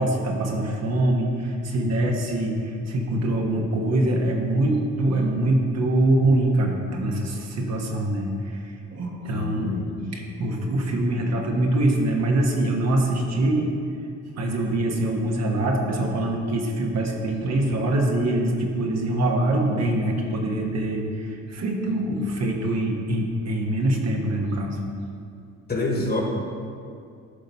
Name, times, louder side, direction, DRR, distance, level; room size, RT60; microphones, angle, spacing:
voice 1, 0.0-8.6 8.9-9.7 10.1-13.7 14.3-24.8, right 1 dB, 60° right, 0 dB, 1.3 m, -24 dB
voice 2, 9.3-9.9 25.7-26.2, left 2 dB, 30° left, 0 dB, 1.6 m, -27 dB
11.5 x 4.0 x 5.5 m, 2.4 s
cardioid pair, 90°, 30 cm